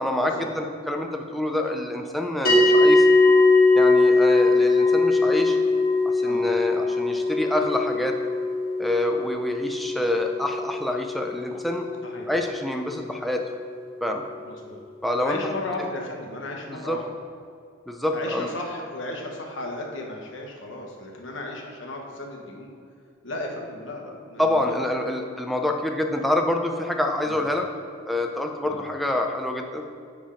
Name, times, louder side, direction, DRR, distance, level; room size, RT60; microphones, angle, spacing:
voice 1, 0.0-3.1 3.7-5.6 6.1-8.2 8.8-11.9 12.3-13.4 14.0-14.2 15.0-15.5 16.7-17.0 17.9-18.5 24.4-27.7 28.1-29.8, left 1 dB, ahead, 2 dB, 0.5 m, -26 dB
sound 1, 2.4-13.0, left 2 dB, 50° left, 1.7 m, -21 dB
voice 2, 14.5-14.8 15.2-17.0 18.1-22.7 23.2-24.6 25.0-25.2 27.2-27.4 28.6-28.8, left 2 dB, 70° left, 0 dB, 1.1 m, -35 dB
7.9 x 3.5 x 4.9 m, 2.3 s
head